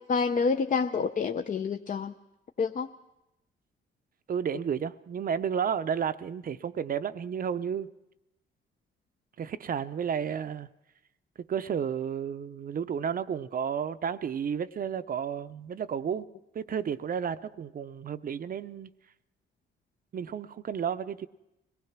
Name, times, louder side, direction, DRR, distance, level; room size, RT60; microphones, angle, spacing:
voice 1, 0.0-2.1 2.6-2.9, left 5 dB, 40° left, 0.6 m, -28 dB
voice 2, 4.3-7.9 9.4-10.7 11.4-16.3 16.5-18.9 20.1-21.3, right 7 dB, 45° right, 0.6 m, -32 dB
25.0 x 18.5 x 6.0 m
cardioid pair, 90°, 20 cm